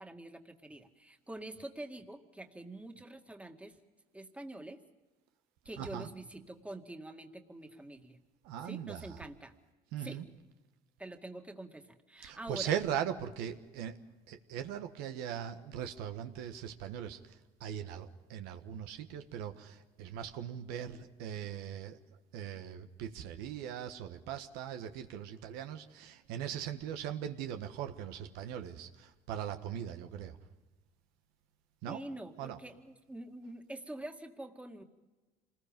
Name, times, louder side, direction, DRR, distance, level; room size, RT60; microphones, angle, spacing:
voice 1, 0.0-3.8 4.1-4.8 5.7-8.2 8.6-9.5 10.0-10.3 11.0-12.7 31.9-34.8, right 1 dB, 10° right, 4 dB, 2.1 m, -46 dB
voice 2, 5.8-6.1 8.4-9.2 9.9-10.2 12.2-14.0 14.3-22.0 22.3-30.4 31.8-32.0 32.4-32.6, right 9 dB, 85° right, 7 dB, 1.4 m, -40 dB
27.0 x 20.5 x 5.3 m, 1.2 s
supercardioid pair, 95°, 16 cm